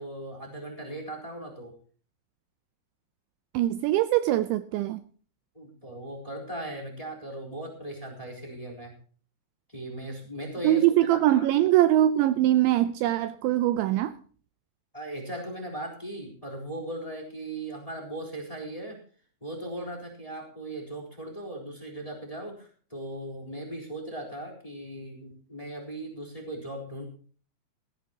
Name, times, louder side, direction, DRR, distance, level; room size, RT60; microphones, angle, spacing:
voice 1, 0.0-1.7 5.5-8.9 9.7-11.4 14.9-19.0 19.4-27.1, right 1 dB, 10° left, 2 dB, 3.2 m, -38 dB
voice 2, 3.5-5.0 10.6-14.2, right 13 dB, 80° right, 12 dB, 2.8 m, -22 dB
17.5 x 16.0 x 2.9 m, 0.41 s
omnidirectional pair, 5.7 m